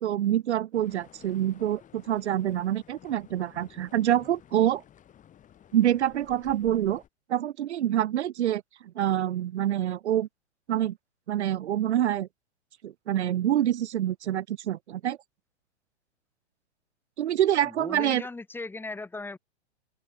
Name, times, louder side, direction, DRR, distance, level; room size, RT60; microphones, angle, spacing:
voice 1, 0.0-4.8 5.7-7.0 7.3-8.6 9.0-10.3 10.7-11.0 11.3-12.3 12.8-15.2 17.2-18.2, right 11 dB, 75° right, 0.7 m, -26 dB
sound 1, 0.7-7.1, left 10 dB, 20° left, 7.1 m, -54 dB
voice 2, 17.6-19.4, left 3 dB, 5° left, 1.9 m, -38 dB
open air
hypercardioid pair, 125°, 34 cm